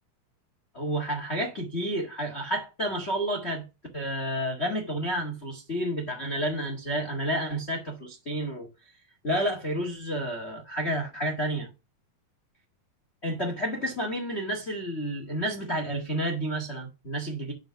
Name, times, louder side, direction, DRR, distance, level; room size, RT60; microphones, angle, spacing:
voice 1, 0.7-3.6 3.9-8.9 9.2-11.7 13.2-17.5, right 1 dB, 90° left, 0.5 m, -30 dB
8.8 x 4.0 x 5.7 m
omnidirectional pair, 4.4 m